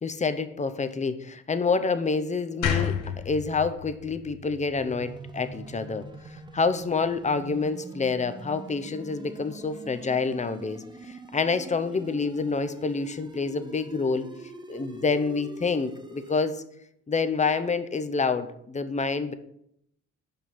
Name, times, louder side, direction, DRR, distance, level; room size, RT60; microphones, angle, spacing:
voice 1, 0.0-3.0 3.3-14.2 14.7-16.6 17.1-19.3, left 4 dB, 25° left, 11 dB, 0.6 m, -28 dB
sound 1, 2.6-5.8, left 8 dB, 90° left, 1.0 m, -31 dB
sound 2, 4.8-16.4, right 2 dB, 15° right, 0.8 m, -44 dB
5.5 x 5.1 x 5.9 m, 0.74 s
cardioid pair, 90°, 30 cm